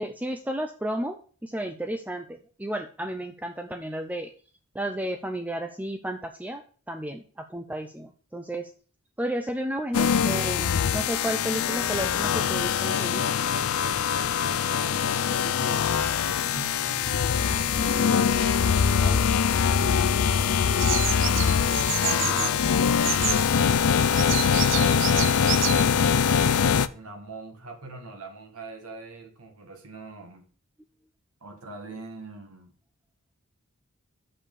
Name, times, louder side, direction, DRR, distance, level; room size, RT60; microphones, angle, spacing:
voice 1, 0.0-4.3 4.7-6.6 6.9-8.7 9.2-13.2, right 1 dB, 5° right, 7 dB, 0.4 m, -32 dB
sound 1, 9.9-26.9, left 7 dB, 80° left, 0.4 m, -23 dB
voice 2, 14.8-20.7 21.8-23.0 24.0-25.9 26.9-30.4 31.4-32.7, right 3 dB, 85° right, 3 dB, 1.6 m, -43 dB
Bird vocalization bird call bird song, 20.8-26.4, right 11 dB, 55° right, 0.5 m, -31 dB
6.4 x 5.8 x 6.9 m, 0.42 s
head